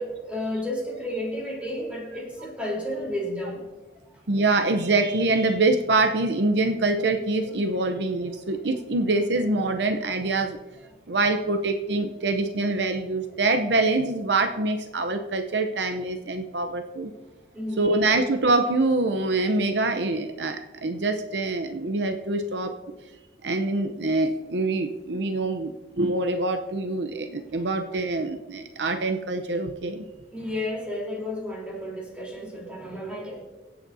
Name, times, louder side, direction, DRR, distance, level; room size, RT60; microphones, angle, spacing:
voice 1, 0.0-3.7 4.3-4.4 17.5-18.0 27.6-27.7 30.3-33.4, left 1 dB, 5° right, -3 dB, 3.7 m, -32 dB
voice 2, 4.3-10.6 11.1-17.1 17.8-22.7 23.4-30.1, right 2 dB, 75° right, 7 dB, 0.7 m, -25 dB
26.0 x 8.8 x 2.7 m, 1.2 s
head